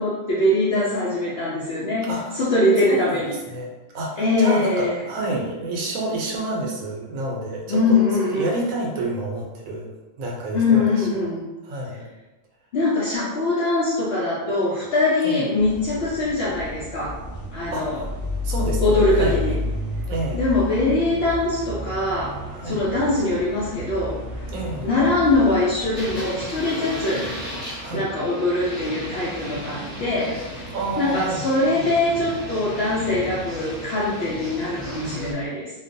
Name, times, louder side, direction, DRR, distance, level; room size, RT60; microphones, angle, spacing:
voice 1, 0.0-3.3 4.2-5.0 7.7-8.5 10.5-11.4 12.7-17.2 17.5-18.0 18.8-19.5 20.3-22.4 22.6-24.2 24.8-27.3 27.9-30.4 31.0-35.7, left 2 dB, 60° left, -8 dB, 0.7 m, -22 dB
voice 2, 2.1-2.4 2.9-3.2 3.5-9.9 10.2-11.1 11.6-12.0 15.2-15.4 17.7-18.0 18.4-19.6 20.1-20.4 22.5-22.8 24.5-24.9 27.8-28.1 30.7-31.4, right 2 dB, 85° right, -2 dB, 1.0 m, -29 dB
sound 1, 15.6-26.2, left 2 dB, 30° right, 0.7 m, -31 dB
sound 2, 25.9-35.3, equal, ahead, 1.0 m, -34 dB
2.4 x 2.2 x 2.5 m, 1.1 s
omnidirectional pair, 1.4 m